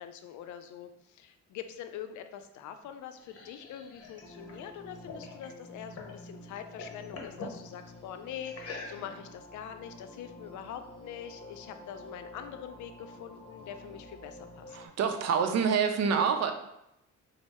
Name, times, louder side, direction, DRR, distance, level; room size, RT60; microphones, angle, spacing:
voice 1, 0.0-14.8, left 9 dB, 75° left, 8 dB, 0.5 m, -44 dB
sound 1, 2.8-6.2 6.5-7.6 8.5-9.3, left 3 dB, 50° left, 0.8 m, -45 dB
sound 2, 4.2-14.9, left 1 dB, 20° left, 0.6 m, -50 dB
voice 2, 14.7-16.5, right 6 dB, 60° right, 7 dB, 0.5 m, -27 dB
4.0 x 2.0 x 3.4 m, 0.84 s
cardioid pair, 90°, 30 cm